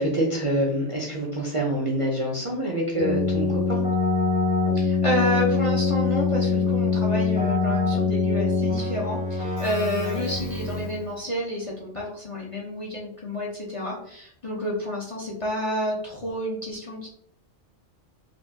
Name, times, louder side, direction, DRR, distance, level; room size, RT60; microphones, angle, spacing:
voice 1, 0.0-3.8, right 1 dB, 35° right, -3 dB, 0.6 m, -26 dB
Keyboard (musical), 2.9-11.1, left 4 dB, 55° left, 1.8 m, -24 dB
voice 2, 4.7-17.1, equal, 35° left, -3 dB, 0.7 m, -29 dB
4.4 x 2.6 x 2.7 m, 0.67 s
omnidirectional pair, 1.2 m